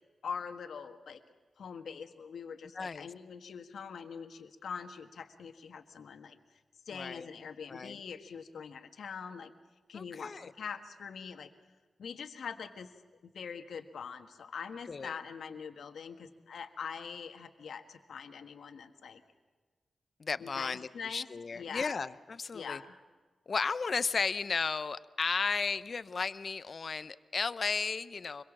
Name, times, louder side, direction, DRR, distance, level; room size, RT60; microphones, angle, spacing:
voice 1, 0.2-1.2 1.6-6.4 6.9-9.5 9.9-11.5 12.0-12.9 13.2-19.2 20.4-22.0 22.5-22.9, left 6 dB, 80° left, 7 dB, 1.5 m, -43 dB
voice 2, 2.7-3.1 6.9-7.3 7.7-8.0 9.9-10.5 14.9-15.2 20.2-22.8 23.5-28.4, left 4 dB, 45° left, 15 dB, 0.7 m, -34 dB
25.0 x 22.5 x 7.4 m, 1.4 s
wide cardioid pair, 145°, 0 cm